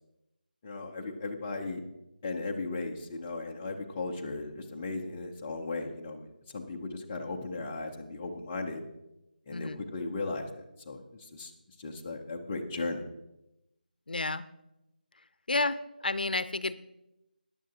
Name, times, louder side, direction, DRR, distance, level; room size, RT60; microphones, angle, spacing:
voice 1, 0.6-1.8 2.2-8.8 9.5-11.5 11.8-13.0, left 3 dB, 10° left, 0 dB, 0.5 m, -36 dB
voice 2, 14.1-14.4 15.5-16.7, left 3 dB, 65° left, 15 dB, 0.6 m, -31 dB
14.5 x 10.0 x 2.8 m, 0.93 s
figure-of-eight pair, 175°, 5 cm